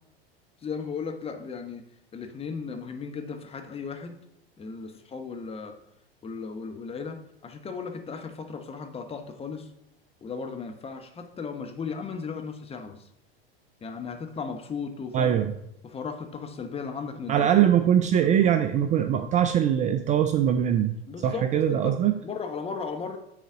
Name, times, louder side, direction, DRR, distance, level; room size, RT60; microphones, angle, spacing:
voice 1, 0.6-1.8 2.1-4.2 4.6-5.7 6.2-9.7 10.2-13.1 13.8-15.3 15.8-17.5 18.4-18.5 21.1-22.0 22.2-23.2, left 5 dB, 20° left, 5 dB, 1.0 m, -36 dB
voice 2, 15.1-15.5 17.3-20.9 21.2-22.1, right 9 dB, 25° right, 8 dB, 0.4 m, -22 dB
9.6 x 4.0 x 3.8 m, 0.78 s
hypercardioid pair, 95°, 31 cm